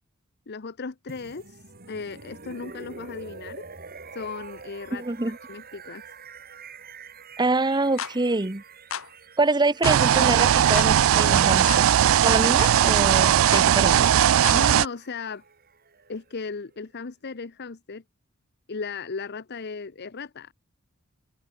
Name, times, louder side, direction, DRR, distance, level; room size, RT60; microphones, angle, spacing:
voice 1, 0.5-3.6 4.1-5.0 5.5-6.0 14.5-15.4 16.1-18.0 18.7-20.5, left 4 dB, 55° left, 0.8 m, -36 dB
sound 1, 1.1-17.0, right 4 dB, 50° right, 3.2 m, -46 dB
voice 2, 4.9-5.4 7.4-8.6 9.4-11.9 12.2-14.1, right 2 dB, 20° right, 1.0 m, -25 dB
sound 2, 8.0-8.2 8.9-9.1 9.8-10.0 10.7-10.9 11.7-11.9 12.6-12.8 13.5-13.7 14.4-14.6, left 7 dB, 90° left, 1.7 m, -32 dB
sound 3, 9.8-14.9, right 10 dB, 70° right, 0.4 m, -19 dB
open air
head